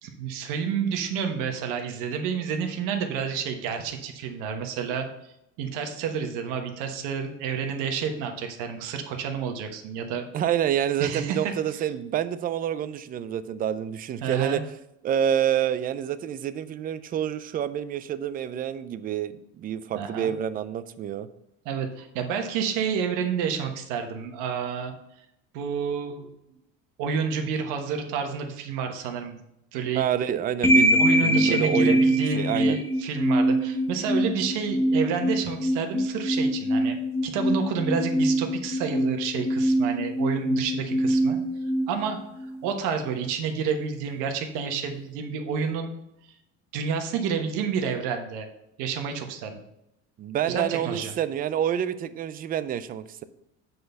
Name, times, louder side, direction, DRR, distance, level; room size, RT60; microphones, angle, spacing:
voice 1, 0.0-5.1 5.6-10.3 11.0-11.8 14.2-14.6 19.9-20.3 21.6-24.9 25.5-26.3 27.0-29.4 29.7-30.0 31.0-37.0 37.2-41.4 41.9-42.2 42.6-45.9 46.7-48.5 48.8-49.6 50.5-51.1, right 6 dB, 75° right, 5 dB, 1.3 m, -29 dB
voice 2, 10.3-14.6 15.0-21.3 29.9-32.0 32.3-32.8 50.2-53.2, right 10 dB, 30° right, 13 dB, 0.4 m, -28 dB
sound 1, 30.6-42.7, equal, 10° left, 0.8 m, -24 dB
7.7 x 4.0 x 6.8 m, 0.83 s
cardioid pair, 150°, 32 cm